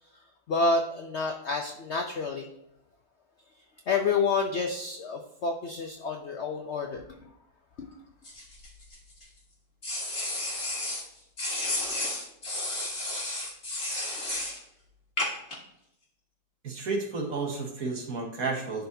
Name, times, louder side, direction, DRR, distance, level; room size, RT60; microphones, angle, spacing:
voice 1, 0.5-2.5 3.9-7.3 7.8-7.9, left 4 dB, 65° left, 3 dB, 0.7 m, -29 dB
sound 1, 8.2-9.2 9.8-11.0 11.4-14.6 15.2-15.6, left 2 dB, 35° left, 1.7 m, -32 dB
voice 2, 16.6-18.9, right 3 dB, 60° right, 1 dB, 1.7 m, -32 dB
11.0 x 3.9 x 2.7 m, 0.84 s
omnidirectional pair, 1.8 m